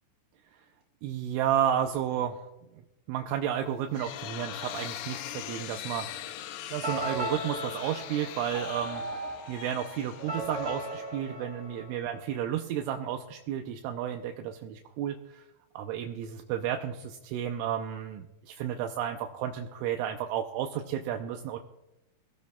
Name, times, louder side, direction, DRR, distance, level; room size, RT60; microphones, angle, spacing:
voice 1, 1.0-2.4 3.1-6.1 6.7-15.4 15.8-21.6, right 10 dB, 80° right, 4 dB, 3.0 m, -32 dB
sound 1, 3.6-11.5, left 12 dB, 85° left, 2.6 m, -42 dB
sound 2, 6.8-12.6, right 1 dB, 45° right, 1.2 m, -37 dB
22.0 x 16.0 x 2.3 m, 0.96 s
omnidirectional pair, 5.8 m